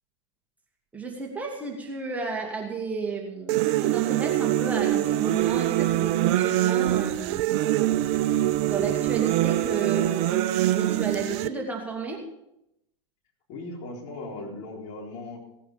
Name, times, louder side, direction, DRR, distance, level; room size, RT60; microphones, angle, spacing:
voice 1, 0.9-7.5 8.6-10.4 10.7-12.2, right 4 dB, 10° right, -1 dB, 2.3 m, -32 dB
sound 1, 3.5-11.5, right 14 dB, 45° right, 0.6 m, -24 dB
voice 2, 13.5-15.4, left 2 dB, 50° left, -2 dB, 4.1 m, -38 dB
17.0 x 9.2 x 5.2 m, 0.83 s
figure-of-eight pair, 95°, 15 cm